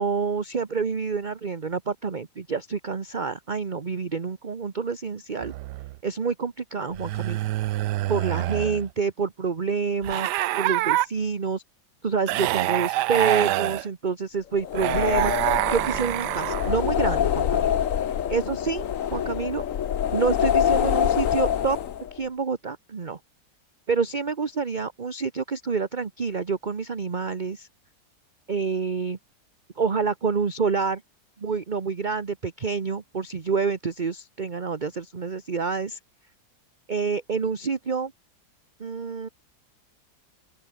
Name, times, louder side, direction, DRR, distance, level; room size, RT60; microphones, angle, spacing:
voice 1, 0.0-5.5 6.0-7.4 8.1-10.3 10.6-11.6 12.0-15.3 15.7-17.7 18.3-19.6 20.1-21.8 22.1-23.2 23.9-27.7 28.5-29.2 29.8-31.0 31.4-36.0 36.9-38.1 38.8-39.3, right 5 dB, 30° right, 1.1 m, -27 dB
sound 1, 5.4-6.0 6.9-8.9 10.0-11.1 12.3-13.8 14.7-16.8, right 16 dB, 80° right, 1.2 m, -26 dB
sound 2, 14.6-22.2, left 9 dB, 55° left, 1.2 m, -25 dB
open air
omnidirectional pair, 1.8 m